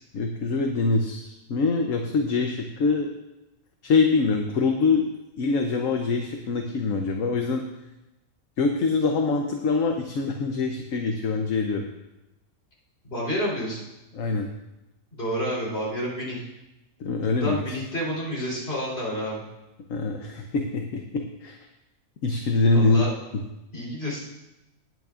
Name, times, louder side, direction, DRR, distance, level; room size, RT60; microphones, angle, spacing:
voice 1, 0.1-3.1 3.8-5.1 5.4-7.6 8.6-11.9 14.1-14.5 17.0-17.6 19.9-21.6 22.2-23.0, left 4 dB, 70° left, 3 dB, 1.2 m, -24 dB
voice 2, 13.0-13.9 15.1-16.4 17.4-19.4 22.7-23.1 23.7-24.2, equal, 45° left, -5 dB, 3.9 m, -29 dB
18.5 x 9.4 x 2.5 m, 0.97 s
omnidirectional pair, 1.4 m